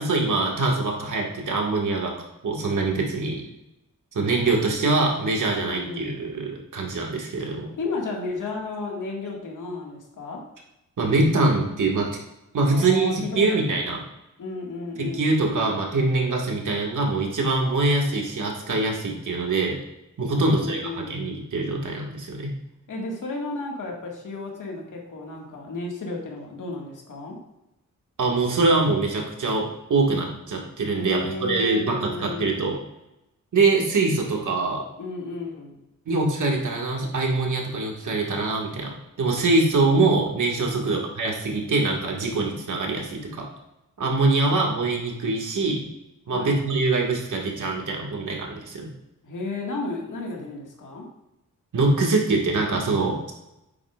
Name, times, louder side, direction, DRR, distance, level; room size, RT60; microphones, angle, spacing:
voice 1, 0.0-2.1 2.4-3.4 4.1-7.7 11.0-12.1 12.5-14.0 15.0-19.8 20.2-22.5 28.2-32.7 33.5-34.8 36.1-43.4 44.0-45.9 46.3-48.9 51.7-53.3, right 3 dB, 75° right, 0 dB, 1.9 m, -24 dB
voice 2, 5.5-6.2 7.7-10.4 12.7-13.9 14.4-15.7 20.3-21.2 22.9-27.4 30.9-32.6 35.0-35.8 40.7-41.1 46.3-46.6 49.2-51.1, left 3 dB, 80° left, -1 dB, 1.9 m, -33 dB
9.8 x 7.6 x 2.5 m, 0.91 s
wide cardioid pair, 110°, 31 cm